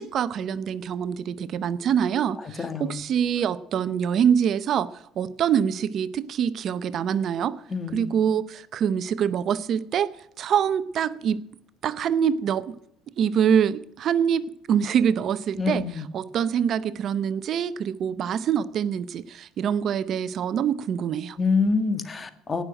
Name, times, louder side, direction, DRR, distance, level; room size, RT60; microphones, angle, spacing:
voice 1, 0.0-4.9 5.2-7.6 7.9-10.1 10.4-11.4 11.8-12.8 13.2-15.8 16.1-21.4, right 8 dB, 50° right, 15 dB, 0.6 m, -25 dB
voice 2, 2.4-3.0 7.7-8.0 15.5-16.1 21.4-22.6, left 4 dB, 25° left, 10 dB, 1.5 m, -26 dB
18.0 x 6.4 x 8.8 m, 0.77 s
supercardioid pair, 105°, 0 cm